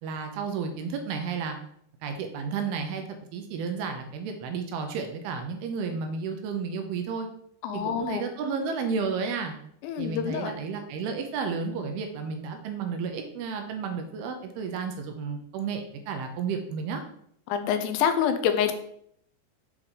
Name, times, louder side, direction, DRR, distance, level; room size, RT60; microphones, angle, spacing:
voice 1, 0.0-1.6 2.0-3.0 3.3-7.3 7.7-9.5 10.0-17.0, right 5 dB, 75° right, 5 dB, 2.5 m, -32 dB
voice 2, 7.6-8.2 9.8-10.5 17.5-18.7, left 8 dB, 85° left, 8 dB, 2.8 m, -26 dB
8.0 x 4.5 x 3.8 m, 0.68 s
omnidirectional pair, 4.8 m